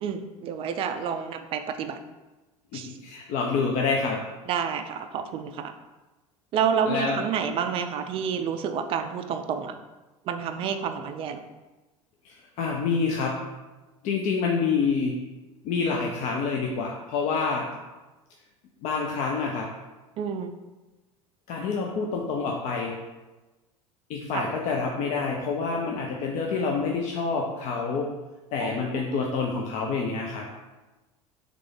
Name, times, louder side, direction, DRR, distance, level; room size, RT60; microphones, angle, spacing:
voice 1, 0.0-2.0 2.7-3.0 4.5-5.7 6.5-9.7 10.3-11.4 20.2-20.5 24.3-24.5 28.6-28.8, right 7 dB, 30° right, 8 dB, 0.4 m, -29 dB
voice 2, 2.7-4.2 6.9-7.2 12.2-13.3 14.0-15.1 15.6-17.7 18.8-19.7 21.5-23.0 24.1-28.1 28.5-30.5, left 4 dB, 40° left, 0 dB, 0.5 m, -27 dB
3.5 x 3.2 x 3.8 m, 1.1 s
figure-of-eight pair, 75°, 18 cm